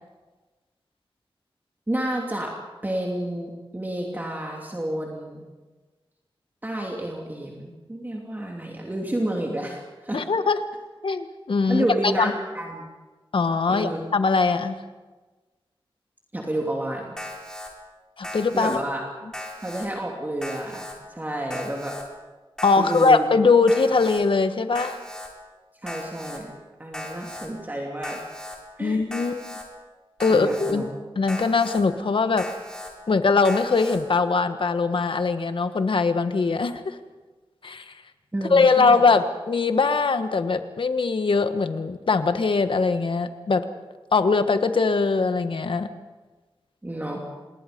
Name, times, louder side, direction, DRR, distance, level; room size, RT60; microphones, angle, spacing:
voice 1, 1.9-2.5 2.8-5.5 6.6-10.2 11.7-12.9 13.7-14.1 16.3-17.2 18.5-19.0 19.6-22.0 22.8-23.2 25.8-26.5 26.8-28.2 28.8-29.0 30.3-30.9 38.3-39.0 46.8-47.2, right 1 dB, 20° right, -1 dB, 2.9 m, -30 dB
voice 2, 10.1-10.7 11.0-11.8 12.2-12.3 13.3-14.8 18.2-18.8 22.6-25.0 28.8-29.5 30.2-30.8 31.2-32.5 33.1-37.0 37.6-37.9 38.5-43.7 44.1-45.9, left 4 dB, 65° left, 9 dB, 1.4 m, -21 dB
Alarm, 17.2-17.7 18.2-18.8 19.3-19.9 20.4-20.9 21.5-22.0 22.6-23.1 23.7-24.2 24.7-25.3 25.9-26.4 26.9-27.5 28.0-28.6 29.1-29.6 30.2-30.7 31.3-31.8 32.4-32.9 33.4-34.0, left 1 dB, 5° left, 4.4 m, -37 dB
27.0 x 21.0 x 5.3 m, 1.3 s
wide cardioid pair, 90°, 9 cm